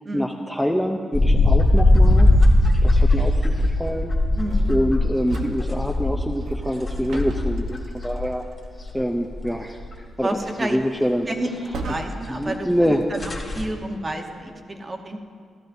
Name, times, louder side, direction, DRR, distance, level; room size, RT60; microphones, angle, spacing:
voice 1, 0.1-2.3 2.8-4.1 4.7-8.4 8.9-11.3 12.3-13.0, equal, ahead, 2 dB, 0.5 m, -25 dB
sound 1, 1.1-8.3 8.6-9.5 9.8-9.9 10.3-10.4 12.5-12.6 12.9-13.0 13.1-13.7, left 1 dB, 20° left, 1.9 m, -19 dB
voice 2, 4.3-4.7 10.2-10.8 11.3-12.7 13.1-15.2, right 1 dB, 25° right, 4 dB, 1.0 m, -30 dB
sound 2, 4.4-12.5, right 2 dB, 80° right, 1.0 m, -38 dB
14.0 x 13.5 x 2.6 m, 2.1 s
cardioid pair, 120°, 0 cm